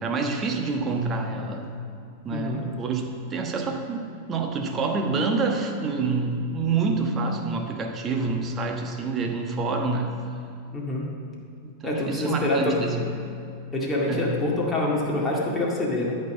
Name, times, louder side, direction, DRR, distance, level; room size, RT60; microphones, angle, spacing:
voice 1, 0.0-1.7 2.2-10.2 11.8-13.3 14.1-14.4, right 4 dB, 25° right, 3 dB, 1.2 m, -27 dB
voice 2, 2.3-2.6 10.7-11.1 11.8-12.8 13.7-16.1, left 2 dB, 15° left, -3 dB, 2.0 m, -26 dB
13.0 x 5.4 x 7.2 m, 2.4 s
figure-of-eight pair, 90°, 0 cm